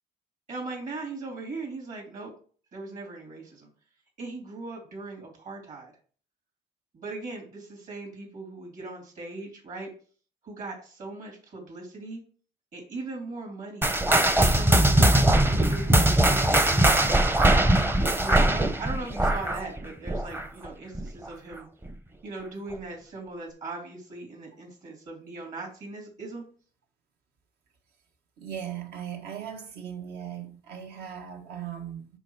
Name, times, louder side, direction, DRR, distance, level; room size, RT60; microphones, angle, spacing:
voice 1, 0.5-2.3 2.7-3.7 4.2-5.9 6.9-9.9 10.4-12.2 12.7-13.9 14.5-17.4 18.2-21.7 22.2-26.4, right 3 dB, 50° right, 3.5 m, -39 dB
sound 1, 13.8-20.7 20.9-21.3 21.9-22.0 22.7-22.8, right 1 dB, 15° right, 0.7 m, -21 dB
voice 2, 28.4-32.1, right 9 dB, 70° right, 1.5 m, -38 dB
6.8 x 5.7 x 4.8 m
cardioid pair, 110°, 17 cm